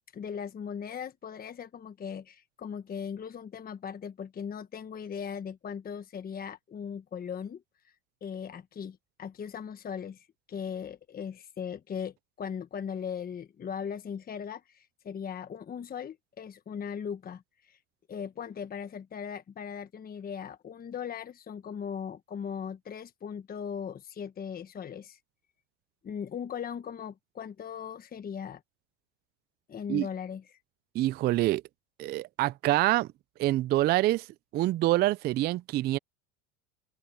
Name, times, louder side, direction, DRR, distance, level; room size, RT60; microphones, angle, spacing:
voice 1, 0.1-7.9 8.2-17.8 18.1-25.2 26.0-28.6 29.7-30.6, left 7 dB, 25° left, 1.3 m, -38 dB
voice 2, 30.9-31.6 32.0-33.1 33.4-34.3 34.5-36.0, right 16 dB, 30° right, 0.3 m, -26 dB
supercardioid pair, 110°, 36 cm